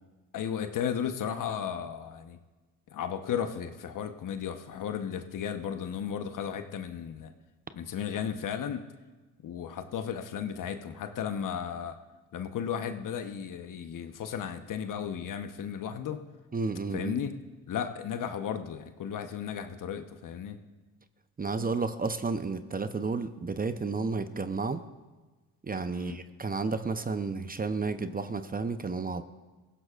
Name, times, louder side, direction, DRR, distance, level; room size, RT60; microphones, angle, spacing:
voice 1, 0.3-2.4 2.9-7.3 7.7-8.9 9.4-12.0 12.3-16.2 16.9-17.4 17.7-20.6 25.9-26.2, left 8 dB, 55° left, 8 dB, 1.1 m, -34 dB
voice 2, 16.5-17.2 21.4-24.9 25.6-29.2, right 4 dB, 25° right, 10 dB, 0.8 m, -32 dB
19.5 x 15.5 x 2.5 m, 1.2 s
hypercardioid pair, 60°, 38 cm